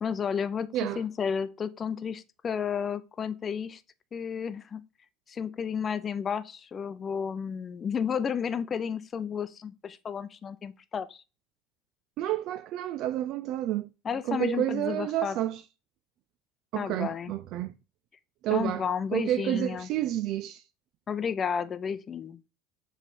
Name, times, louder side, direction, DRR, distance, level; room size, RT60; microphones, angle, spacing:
voice 1, 0.0-3.8 4.1-4.8 5.3-11.2 14.0-15.4 16.7-17.3 18.5-19.9 21.1-22.4, left 7 dB, 30° left, 0.6 m, -32 dB
voice 2, 12.2-13.9 14.3-15.6 16.7-17.7 18.4-18.9 19.1-20.6, right 13 dB, 55° right, 0.4 m, -29 dB
7.3 x 3.3 x 4.3 m
supercardioid pair, 120°, 0 cm